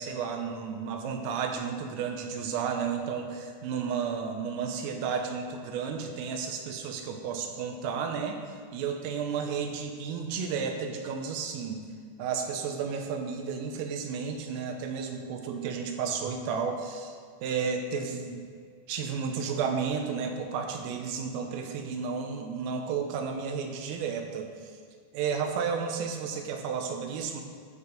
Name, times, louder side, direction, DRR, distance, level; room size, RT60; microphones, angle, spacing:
voice 1, 0.0-8.4 8.7-11.8 12.2-17.2 17.4-18.5 18.9-24.7 25.1-27.4, right 6 dB, 80° right, 4 dB, 3.6 m, -32 dB
14.0 x 4.6 x 6.8 m, 2.1 s
omnidirectional pair, 6.0 m